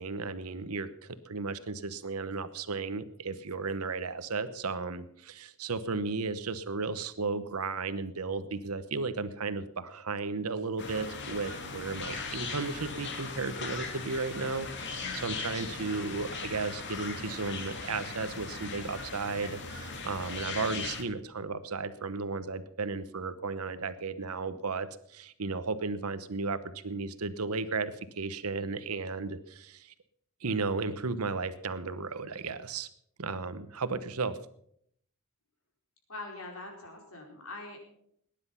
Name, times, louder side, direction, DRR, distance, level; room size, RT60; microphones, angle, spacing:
voice 1, 0.0-29.9 30.4-32.9 33.2-34.4, right 4 dB, 85° right, 13 dB, 1.0 m, -34 dB
sound 1, 10.8-21.0, left 4 dB, 55° left, 2.2 m, -39 dB
voice 2, 36.1-37.8, left 2 dB, 70° left, 1 dB, 4.7 m, -43 dB
18.5 x 10.5 x 5.7 m, 0.70 s
head